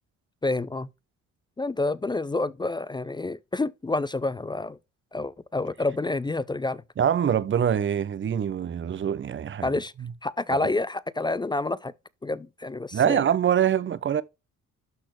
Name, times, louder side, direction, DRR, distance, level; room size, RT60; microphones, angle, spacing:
voice 1, 0.4-0.9 1.6-4.8 5.1-6.8 9.6-9.9 10.2-11.9 12.2-13.2, left 2 dB, 15° left, 0.4 m, -28 dB
voice 2, 7.0-9.7 10.0-10.1 10.5-10.7 12.9-14.2, right 9 dB, 40° right, 0.7 m, -24 dB
12.0 x 4.2 x 3.1 m
cardioid pair, 90°, 30 cm